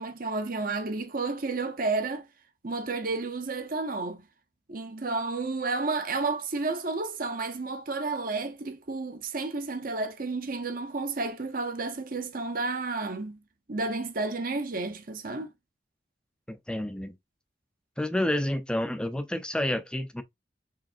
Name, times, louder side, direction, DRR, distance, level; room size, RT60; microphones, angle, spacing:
voice 1, 0.0-2.3 2.6-4.2 4.7-13.4 13.7-15.5, right 3 dB, 50° right, 0.9 m, -31 dB
voice 2, 16.5-17.2 18.0-20.2, left 1 dB, 5° left, 0.5 m, -29 dB
4.9 x 3.3 x 2.6 m
head